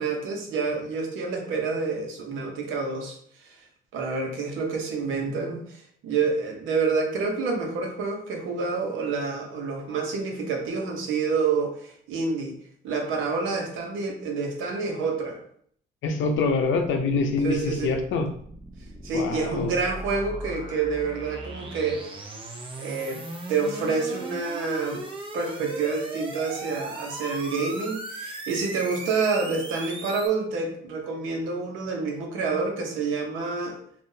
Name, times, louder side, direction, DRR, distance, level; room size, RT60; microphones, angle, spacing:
voice 1, 0.0-3.2 3.9-5.6 6.0-12.6 12.8-15.4 17.4-17.9 19.0-22.2 22.8-23.2 23.5-25.0 25.3-33.8, right 4 dB, 80° right, 2 dB, 0.8 m, -28 dB
voice 2, 16.0-18.3 19.1-19.7, left 3 dB, 75° left, 4 dB, 0.6 m, -25 dB
sound 1, 16.8-30.3, right 2 dB, 25° right, 0.6 m, -38 dB
3.7 x 2.4 x 2.7 m, 0.62 s
cardioid pair, 90°, 20 cm